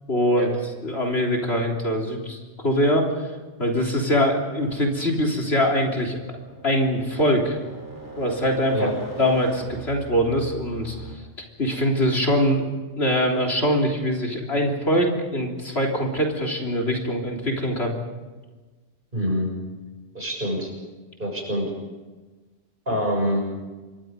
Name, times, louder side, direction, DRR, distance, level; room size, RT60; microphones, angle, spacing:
voice 1, 0.1-0.5 0.8-3.1 3.6-6.2 6.6-7.6 8.2-8.9 9.2-11.0 11.6-12.7 13.0-17.9, equal, 65° left, 0 dB, 3.8 m, -23 dB
sound 1, 6.0-11.1, right 2 dB, 20° left, 6.0 m, -41 dB
voice 2, 19.1-19.5 20.1-20.7 21.2-21.7 22.9-23.5, equal, 45° right, 1 dB, 7.1 m, -25 dB
27.5 x 23.0 x 5.3 m, 1.3 s
omnidirectional pair, 1.2 m